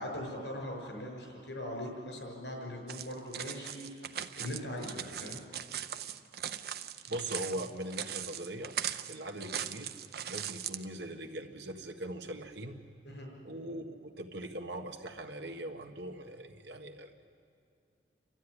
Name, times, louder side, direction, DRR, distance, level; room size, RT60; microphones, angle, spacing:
voice 1, 0.0-5.4 13.0-13.3, left 1 dB, 80° left, 1 dB, 6.2 m, -41 dB
sound 1, 2.9-10.8, right 9 dB, 60° right, 0.7 m, -39 dB
voice 2, 7.1-8.7 9.1-10.0 10.3-12.8 13.4-17.2, right 1 dB, 75° right, 5 dB, 1.6 m, -41 dB
28.5 x 13.0 x 10.0 m, 2.4 s
head